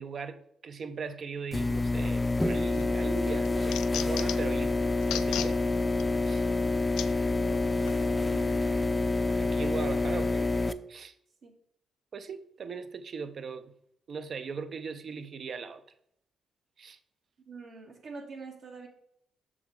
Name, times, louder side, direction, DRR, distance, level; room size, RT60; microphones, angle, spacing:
voice 1, 0.0-4.8 5.1-5.6 6.2-6.5 9.4-10.5 10.9-11.1 12.1-13.7 14.1-15.8 16.8-17.0, right 5 dB, 55° right, 0.6 m, -39 dB
sound 1, 1.5-10.7, left 2 dB, 15° left, 0.5 m, -27 dB
sound 2, 2.4-2.8 3.2-4.5 5.0-5.5 6.0-6.1 7.0-7.1 7.9-8.0, left 11 dB, 85° left, 0.4 m, -35 dB
voice 2, 7.3-8.8 11.4-11.5 17.4-18.9, right 4 dB, 70° right, 1.8 m, -46 dB
6.4 x 6.1 x 3.8 m
supercardioid pair, 65°, 0 cm